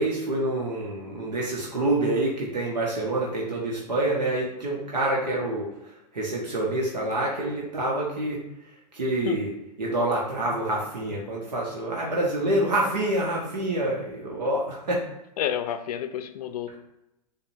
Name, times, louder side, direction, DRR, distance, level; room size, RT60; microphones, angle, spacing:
voice 1, 0.0-5.7 6.1-8.4 8.9-9.5 9.8-15.1, right 1 dB, 85° right, -3 dB, 0.9 m, -27 dB
voice 2, 15.4-16.8, left 10 dB, 65° left, 9 dB, 0.5 m, -30 dB
6.5 x 2.3 x 2.6 m, 0.88 s
hypercardioid pair, 105°, 21 cm